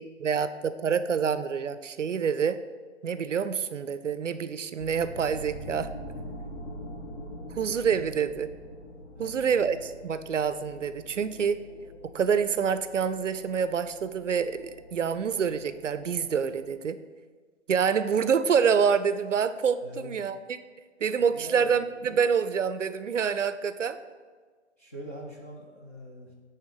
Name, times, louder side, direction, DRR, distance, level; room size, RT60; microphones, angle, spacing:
voice 1, 0.0-2.6 3.0-5.9 7.5-8.5 9.2-11.6 12.0-17.0 17.7-20.6 21.0-24.0, right 6 dB, 80° right, 13 dB, 0.5 m, -27 dB
sound 1, 4.8-16.7, equal, 60° left, 1.1 m, -44 dB
voice 2, 9.1-9.8 19.8-20.2 21.2-22.0 24.8-26.3, equal, 15° left, -3 dB, 0.4 m, -44 dB
8.7 x 3.4 x 4.8 m, 1.5 s
figure-of-eight pair, 125°, 36 cm